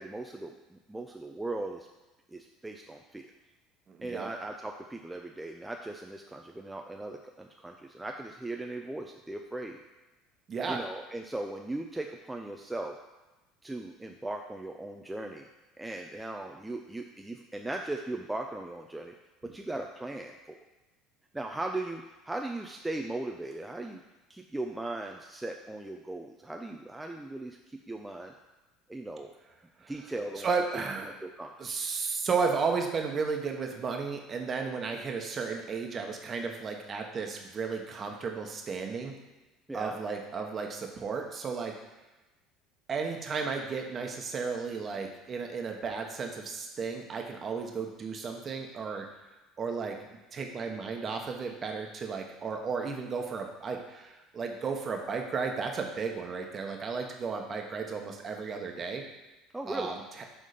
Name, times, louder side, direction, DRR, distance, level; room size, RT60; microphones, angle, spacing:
voice 1, 0.0-1.9 2.3-3.3 4.0-9.8 10.7-13.0 13.6-15.5 15.8-19.1 19.4-20.6 21.3-24.0 24.3-28.3 28.9-29.3 29.9-30.5 30.7-31.8 39.7-40.0 59.5-59.9, right 2 dB, 10° right, 2 dB, 0.5 m, -38 dB
voice 2, 3.9-4.3 10.5-10.8 29.8-29.9 30.4-31.1 31.6-39.1 39.7-41.7 42.9-49.1 49.6-59.0 59.7-60.0, right 5 dB, 40° right, 3 dB, 1.1 m, -34 dB
6.6 x 3.6 x 5.1 m, 1.1 s
hypercardioid pair, 80°, 0 cm